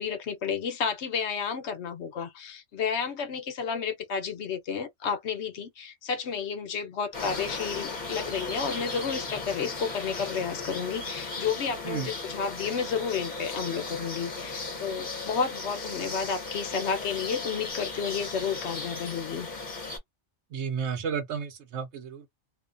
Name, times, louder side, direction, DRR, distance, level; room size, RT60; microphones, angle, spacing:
voice 1, 0.0-19.5, left 6 dB, 70° left, 1.0 m, -31 dB
sound 1, 7.1-20.0, left 3 dB, 40° left, 1.0 m, -36 dB
voice 2, 20.5-22.3, right 6 dB, 75° right, 1.0 m, -32 dB
2.5 x 2.2 x 2.4 m
omnidirectional pair, 1.2 m